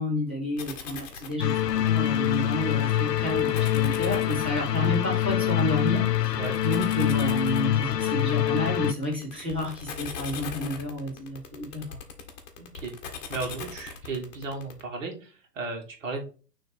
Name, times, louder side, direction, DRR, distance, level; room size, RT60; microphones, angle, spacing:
voice 1, 0.0-12.0, left 1 dB, 10° right, -4 dB, 0.4 m, -31 dB
sound 1, 0.6-14.8, left 6 dB, 25° left, 1.2 m, -40 dB
sound 2, 1.4-8.9, left 12 dB, 75° left, 0.5 m, -25 dB
voice 2, 12.6-12.9 13.3-16.2, right 3 dB, 50° right, 2 dB, 2.1 m, -35 dB
6.4 x 3.2 x 4.6 m, 0.37 s
figure-of-eight pair, 120°, 49 cm